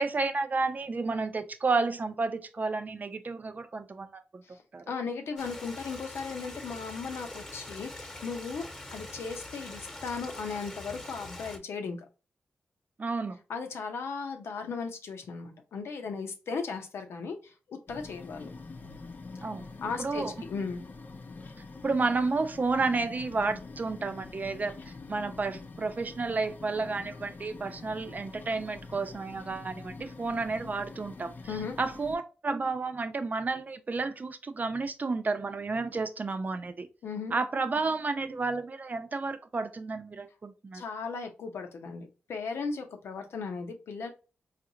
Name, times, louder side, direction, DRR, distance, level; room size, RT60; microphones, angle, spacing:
voice 1, 0.0-4.4 4.7-4.8 13.0-13.4 19.4-19.7 20.0-20.3 21.8-36.9 37.3-40.8, right 3 dB, 40° right, 0.6 m, -31 dB
voice 2, 4.9-12.0 13.5-18.5 19.8-20.8 31.5-31.8 37.0-37.4 40.7-44.1, left 5 dB, 80° left, 0.8 m, -36 dB
Stream, 5.4-11.6, left 1 dB, 10° left, 1.1 m, -44 dB
sound 1, 17.9-32.2, left 3 dB, 45° left, 0.6 m, -45 dB
4.1 x 2.5 x 2.8 m
cardioid pair, 55°, 4 cm